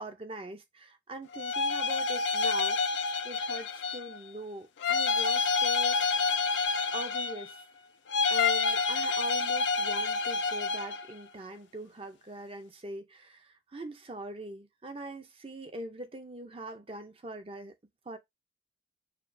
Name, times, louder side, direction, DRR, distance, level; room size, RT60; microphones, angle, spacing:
voice 1, 0.0-6.2 6.9-7.6 8.3-17.7 18.1-18.2, right 1 dB, 30° right, 0.6 m, -42 dB
sound 1, 1.3-4.2 4.8-7.6 8.1-11.1, left 4 dB, 70° left, 0.4 m, -28 dB
6.6 x 2.4 x 2.6 m
head